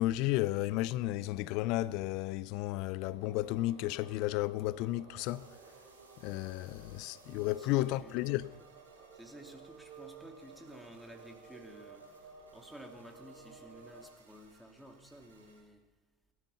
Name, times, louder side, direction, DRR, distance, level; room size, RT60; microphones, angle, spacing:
voice 1, 0.0-5.5 6.2-8.5, left 16 dB, 60° left, 0.5 m, -33 dB
sound 1, 3.1-14.0, right 5 dB, 50° right, 6.8 m, -55 dB
sound 2, 5.2-15.6, right 3 dB, 90° right, 6.0 m, -65 dB
voice 2, 7.3-8.4 9.1-12.0 12.5-15.8, right 1 dB, ahead, 2.6 m, -53 dB
18.0 x 12.5 x 5.7 m
hypercardioid pair, 75°, 0 cm